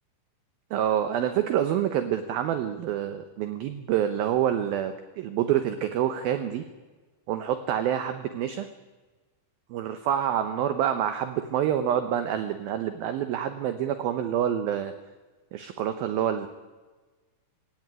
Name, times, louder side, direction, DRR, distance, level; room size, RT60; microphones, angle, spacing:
voice 1, 0.7-6.6 7.3-8.7 9.7-14.9 15.5-16.5, right 10 dB, 70° right, 9 dB, 2.4 m, -27 dB
23.0 x 17.0 x 9.7 m, 1.3 s
omnidirectional pair, 5.2 m